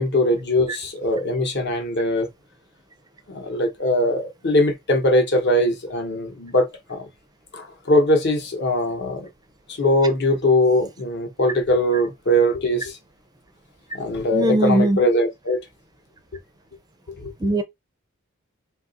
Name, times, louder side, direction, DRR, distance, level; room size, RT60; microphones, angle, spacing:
voice 1, 0.0-2.3 3.3-7.1 7.5-9.3 9.7-12.9 13.9-15.6 17.1-17.3, left 1 dB, 50° left, 0.9 m, -21 dB
voice 2, 14.3-15.0 17.4-17.6, right 1 dB, 20° right, 0.4 m, -19 dB
2.8 x 2.5 x 3.9 m
head